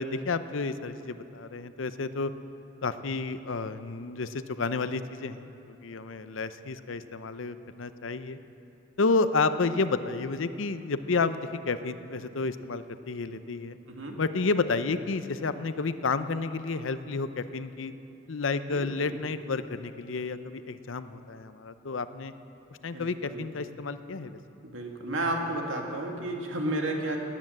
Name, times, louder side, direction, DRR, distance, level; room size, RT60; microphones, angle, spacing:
voice 1, 0.0-2.3 2.8-8.4 9.0-13.8 14.2-17.9 18.3-22.3 22.8-24.4, left 4 dB, 85° left, 12 dB, 0.7 m, -31 dB
voice 2, 13.9-14.2 18.7-19.2 22.9-23.4 24.6-27.2, right 1 dB, 85° right, 1 dB, 2.1 m, -32 dB
18.5 x 9.8 x 7.8 m, 3.0 s
head